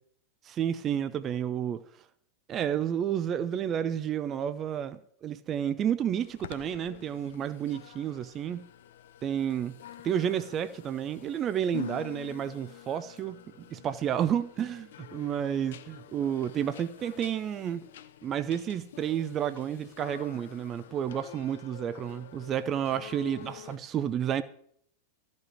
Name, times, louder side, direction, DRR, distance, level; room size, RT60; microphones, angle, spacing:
voice 1, 0.4-1.8 2.5-8.7 9.2-9.8 10.0-17.8 18.2-24.4, right 9 dB, 30° right, 0.7 m, -31 dB
sound 1, 6.1-23.8, left 12 dB, 60° left, 0.7 m, -47 dB
14.0 x 5.4 x 9.1 m
figure-of-eight pair, 90°, 0 cm